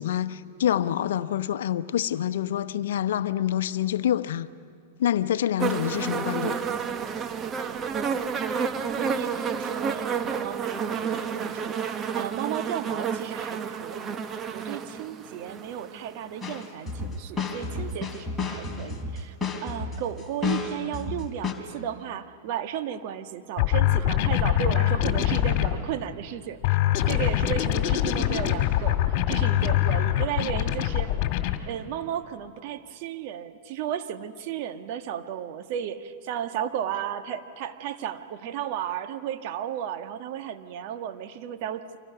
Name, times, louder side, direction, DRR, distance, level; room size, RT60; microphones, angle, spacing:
voice 1, 0.0-4.5 5.0-6.6, left 11 dB, 70° left, 0.9 m, -26 dB
sound 1, 5.6-16.7 17.6-17.7, right 6 dB, 30° right, 1.2 m, -31 dB
voice 2, 8.5-14.2 14.5-19.3 19.6-26.8 27.0-31.1 31.6-41.9, right 10 dB, 55° right, 1.5 m, -34 dB
sound 2, 16.4-21.5, left 4 dB, 10° left, 3.9 m, -31 dB
sound 3, 23.6-25.8 26.6-31.6, left 13 dB, 50° left, 2.3 m, -23 dB
29.5 x 25.5 x 5.9 m
hypercardioid pair, 105°, 0 cm